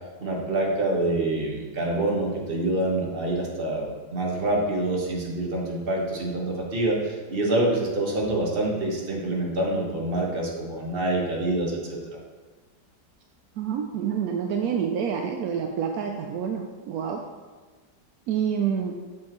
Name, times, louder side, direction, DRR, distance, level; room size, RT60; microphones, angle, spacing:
voice 1, 0.2-12.0, right 2 dB, 35° right, -2 dB, 1.3 m, -26 dB
voice 2, 13.6-17.3 18.3-18.9, right 7 dB, 75° right, 3 dB, 0.8 m, -27 dB
7.4 x 7.4 x 3.1 m, 1.4 s
omnidirectional pair, 2.1 m